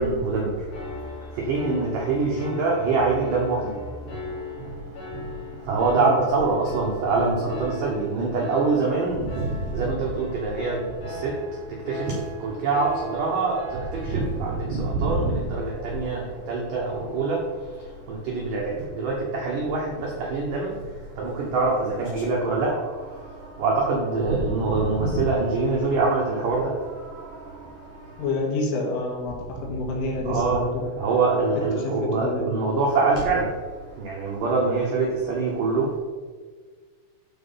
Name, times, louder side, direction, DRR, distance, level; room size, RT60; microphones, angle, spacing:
voice 1, 0.0-28.3 30.2-30.7 31.0-36.0, right 3 dB, 85° right, -2 dB, 1.8 m, -25 dB
Piano, 0.7-14.4, left 1 dB, 55° left, 4.3 m, -38 dB
voice 2, 28.2-30.7 31.8-32.5, left 3 dB, 80° left, -1 dB, 4.3 m, -28 dB
12.0 x 4.5 x 5.7 m, 1.5 s
omnidirectional pair, 5.7 m